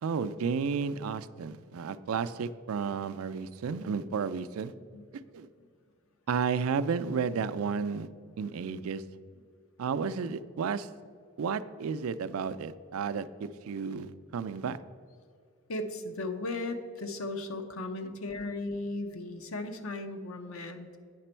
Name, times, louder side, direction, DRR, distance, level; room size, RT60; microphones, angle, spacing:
voice 1, 0.0-4.7 5.3-5.5 6.3-8.1 8.4-9.0 9.8-10.9 11.4-14.8 18.0-18.1, right 6 dB, 90° right, 14 dB, 0.4 m, -32 dB
voice 2, 15.7-21.0, left 2 dB, 85° left, 7 dB, 0.8 m, -36 dB
9.1 x 6.0 x 4.4 m, 2.2 s
head